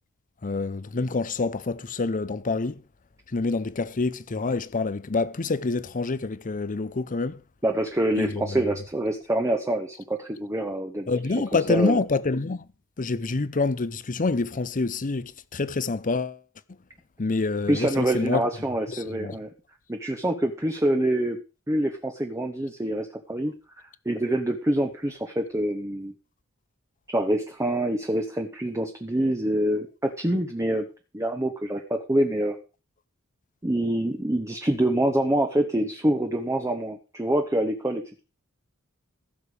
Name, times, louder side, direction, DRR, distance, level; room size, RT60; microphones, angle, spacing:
voice 1, 0.4-2.8 3.3-7.4 8.2-8.6 11.1-12.7 13.0-16.4 17.2-18.5 18.9-19.4, left 3 dB, 35° left, 0.7 m, -27 dB
voice 2, 7.6-11.1 11.7-12.0 17.7-19.5 19.9-21.4 21.7-23.5 24.0-26.1 27.1-30.9 31.1-32.6 33.6-38.2, right 1 dB, 15° right, 1.0 m, -26 dB
15.0 x 6.8 x 5.0 m
head